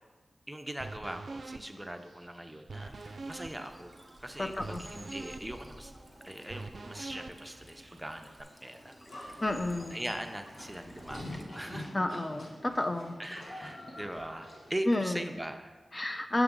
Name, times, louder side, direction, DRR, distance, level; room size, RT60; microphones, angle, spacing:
voice 1, 0.5-3.9 4.2-5.9 6.2-9.0 9.3-9.4 9.7-11.2 11.5-11.9 13.2-15.8, right 1 dB, 10° right, 6 dB, 0.6 m, -41 dB
sound 1, 0.8-8.4, right 3 dB, 65° right, 0.4 m, -46 dB
Bird vocalization bird call bird song / Stream, 2.8-11.4, equal, 15° left, 1.1 m, -52 dB
voice 2, 4.4-4.8 9.4-10.0 11.9-13.2 14.9-15.2 15.9-16.4, left 1 dB, 35° left, 7 dB, 0.5 m, -30 dB
Livestock farm animals working animals, 9.1-14.9, left 1 dB, 85° left, 2.2 m, -46 dB
6.9 x 6.6 x 3.7 m, 1.3 s
cardioid pair, 50°, 0 cm